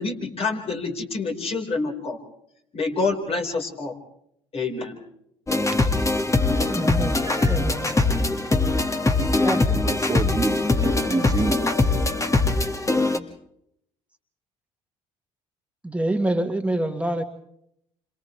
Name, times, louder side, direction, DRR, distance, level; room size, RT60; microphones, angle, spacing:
voice 1, 0.0-2.2 2.7-4.0 4.5-5.0, left 3 dB, 45° left, 1 dB, 5.2 m, -27 dB
sound 1, 5.5-13.2, left 2 dB, 20° left, 2.0 m, -22 dB
voice 2, 6.7-7.9 9.4-9.6 15.8-17.2, right 1 dB, 10° right, 4 dB, 1.9 m, -26 dB
voice 3, 7.3-7.6 7.8-8.1 9.0-11.7, right 4 dB, 25° right, 6 dB, 1.8 m, -30 dB
28.5 x 27.0 x 3.4 m, 0.73 s
supercardioid pair, 65°, 14 cm